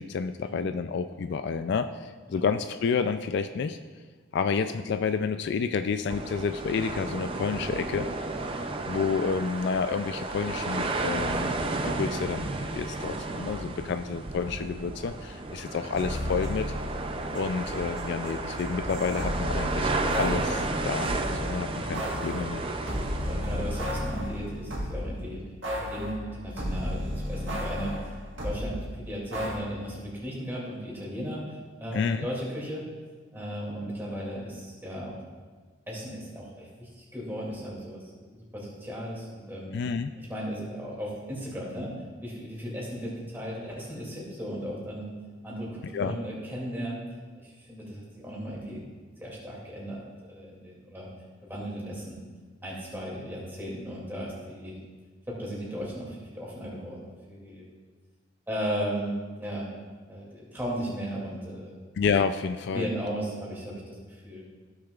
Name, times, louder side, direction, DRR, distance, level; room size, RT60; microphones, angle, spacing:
voice 1, 0.0-3.8 4.3-8.1 8.9-16.7 17.3-19.9 20.2-22.9 31.9-32.3 39.7-40.1 45.9-46.2 62.0-62.9, left 5 dB, 55° left, 9 dB, 0.3 m, -30 dB
sound 1, 6.1-24.0, right 2 dB, 25° right, 0.4 m, -33 dB
sound 2, 15.9-17.7 18.0-21.3 21.9-25.1 25.6-28.7 29.3-29.6, equal, 65° right, 1.7 m, -33 dB
voice 2, 22.9-25.4 25.7-28.1 28.4-32.8 33.3-35.1 35.9-38.0 38.3-39.7 40.2-41.9 42.2-45.1 45.4-47.0 47.4-48.9 49.2-50.0 50.3-51.1 51.4-52.2 52.6-54.8 55.3-57.6 58.5-59.7 60.1-61.8 62.7-63.9 64.2-64.4, equal, 10° right, -5 dB, 2.4 m, -36 dB
15.5 x 6.5 x 2.4 m, 1.4 s
head